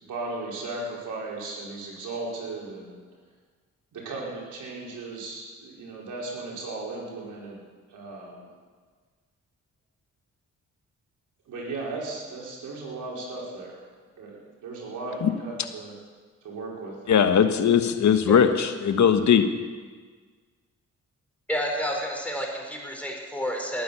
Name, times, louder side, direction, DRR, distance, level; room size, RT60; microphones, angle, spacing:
voice 1, 0.0-3.0 3.9-7.6 7.9-8.4 11.5-13.8 14.2-15.9 16.4-17.3, right 2 dB, 85° right, -3 dB, 4.6 m, -36 dB
voice 2, 17.1-19.5, left 7 dB, 70° left, 9 dB, 1.3 m, -19 dB
voice 3, 21.5-23.8, equal, 5° left, 0 dB, 4.8 m, -30 dB
19.0 x 9.5 x 7.0 m, 1.5 s
cardioid pair, 65°, 30 cm